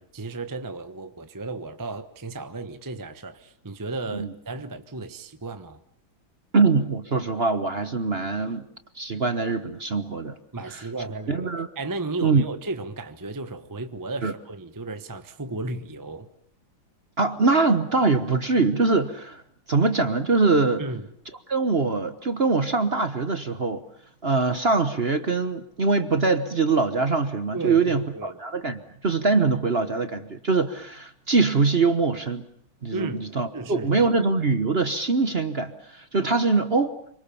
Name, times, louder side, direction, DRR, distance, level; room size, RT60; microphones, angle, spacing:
voice 1, 0.1-5.8 10.5-16.3 20.8-21.1 27.5-28.4 32.9-33.2 33.5-34.1, right 3 dB, 15° right, 9 dB, 0.9 m, -34 dB
voice 2, 6.5-8.6 8.9-10.4 10.7-10.9 11.3-11.7 12.2-12.4 14.2-14.3 17.2-19.4 19.7-20.8 21.5-23.8 24.2-32.4 32.8-37.0, right 4 dB, 35° right, 10 dB, 1.2 m, -23 dB
27.0 x 25.0 x 7.1 m, 0.65 s
omnidirectional pair, 2.2 m